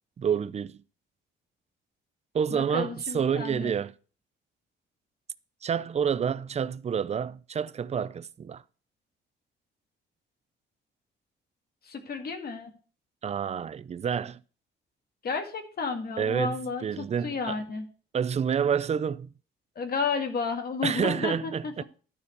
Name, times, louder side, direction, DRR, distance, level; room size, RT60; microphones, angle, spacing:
voice 1, 0.2-0.8 2.3-3.9 5.6-8.6 13.2-14.4 16.2-17.6 18.1-19.3 20.8-21.8, right 7 dB, 35° right, 0.5 m, -28 dB
voice 2, 2.5-3.7 11.8-12.7 15.2-17.8 19.8-21.8, left 4 dB, 50° left, 2.1 m, -32 dB
12.0 x 4.3 x 6.8 m
cardioid pair, 90°, 20 cm